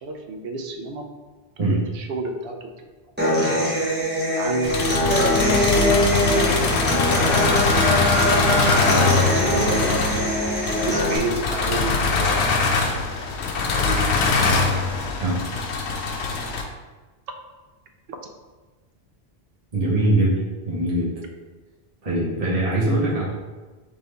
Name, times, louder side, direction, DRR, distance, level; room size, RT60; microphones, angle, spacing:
voice 1, 0.0-1.1 1.6-2.9 3.6-3.7 4.3-4.8 5.3-6.5 7.3-7.8 8.5-10.0 10.7-12.9 13.3-13.4 13.8-14.5 18.1-18.3, right 3 dB, 70° right, 4 dB, 0.8 m, -32 dB
Human voice / Acoustic guitar, 3.2-11.2, equal, 10° right, 1.1 m, -22 dB
voice 2, 3.5-3.8 15.2-15.4 19.7-20.3 20.6-21.1 22.0-23.2, right 1 dB, 35° right, -7 dB, 1.1 m, -22 dB
sound 1, 4.6-16.6, left 4 dB, 85° left, 0.9 m, -22 dB
3.9 x 3.6 x 3.3 m, 1.3 s
omnidirectional pair, 1.1 m